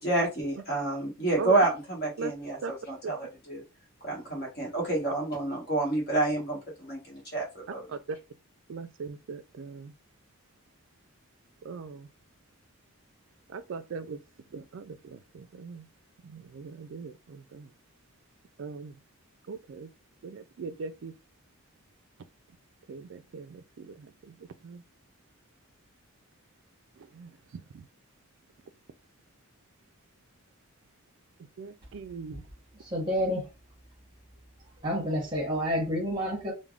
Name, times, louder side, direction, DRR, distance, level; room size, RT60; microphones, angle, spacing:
voice 1, 0.0-3.6 4.0-7.9, right 2 dB, 45° left, 1.1 m, -29 dB
voice 2, 8.7-9.9 11.7-12.0 13.5-14.2 14.5-15.0 15.6-15.8 16.6-17.1 17.5-17.6 18.6-18.9 19.5-19.9 20.2-21.1 22.9-23.6 24.6-24.8 27.2-27.3 31.6-32.4, right 4 dB, 55° right, 0.3 m, -38 dB
voice 3, 32.9-33.4 34.8-36.5, equal, 20° right, 1.1 m, -28 dB
3.4 x 2.2 x 2.4 m
head